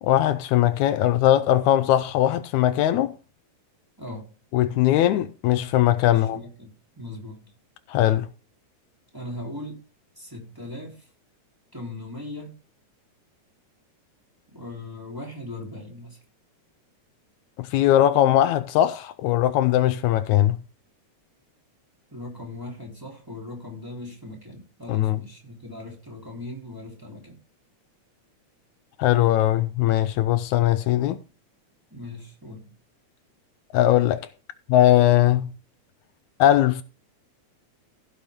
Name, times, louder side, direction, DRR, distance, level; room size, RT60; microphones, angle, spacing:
voice 1, 0.0-3.1 4.5-6.4 7.9-8.3 17.6-20.6 24.9-25.2 29.0-31.2 33.7-34.3 34.7-35.5 36.4-36.8, left 13 dB, 80° left, 2.0 m, -20 dB
voice 2, 6.1-7.5 9.1-9.8 10.1-11.1 11.7-12.5 14.5-16.2 22.1-27.4 31.9-32.7, left 1 dB, 5° right, 3.2 m, -39 dB
16.0 x 5.7 x 3.6 m
omnidirectional pair, 3.4 m